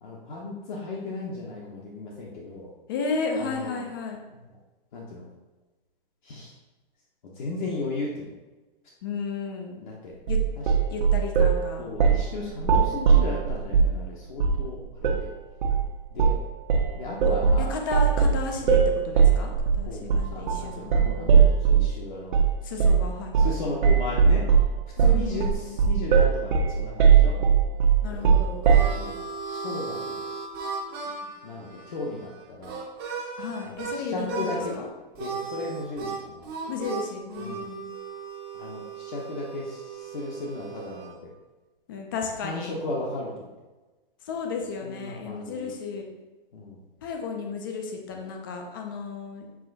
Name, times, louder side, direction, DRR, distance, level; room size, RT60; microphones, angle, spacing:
voice 1, 0.0-2.7 3.4-3.8 4.3-4.6 4.9-5.3 6.2-6.5 7.2-8.3 9.8-10.2 10.6-10.7 11.8-15.3 16.1-16.4 16.9-17.8 19.8-22.4 22.8-23.1 23.3-24.5 25.0-27.4 28.1-28.4 28.9-29.2 29.5-30.3 31.4-32.8 33.6-34.7 35.2-36.5 37.4-37.7 38.5-41.3 42.4-43.5 44.8-45.7 46.5-46.8, left 2 dB, 55° left, -4 dB, 1.2 m, -35 dB
voice 2, 2.9-4.2 9.0-9.9 10.3-10.4 10.9-11.9 17.3-17.4 17.7-18.8 19.0-21.4 22.6-23.6 25.0-25.8 28.0-28.7 33.4-34.9 36.7-37.9 41.9-42.7 44.2-46.0 47.0-49.5, left 4 dB, 25° left, 2 dB, 0.5 m, -33 dB
sound 1, 10.3-11.6 12.0-12.3 12.6-14.0 14.4-14.7 15.0-15.2 15.6-15.9 16.2-16.4 16.7-21.9 22.3-22.5 22.8-23.1 23.3-23.6 23.8-29.0, right 6 dB, 55° right, 0.9 m, -19 dB
Harmonica, 28.2-34.0 34.3-34.8 35.1-41.2, right 4 dB, 25° right, 0.8 m, -36 dB
7.5 x 3.3 x 4.0 m, 1.2 s
hypercardioid pair, 175°, 29 cm